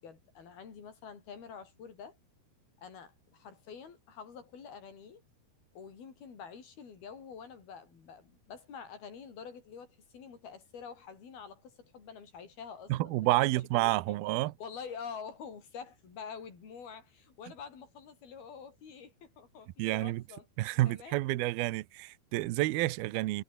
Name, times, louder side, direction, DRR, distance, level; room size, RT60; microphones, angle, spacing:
voice 1, 0.0-2.2 2.8-5.2 5.7-14.2 14.6-20.5 20.9-21.2, left 6 dB, 55° left, 6.5 m, -47 dB
voice 2, 12.9-14.5 19.8-20.2 20.6-23.4, right 17 dB, 75° right, 2.4 m, -29 dB
omnidirectional pair, 5.3 m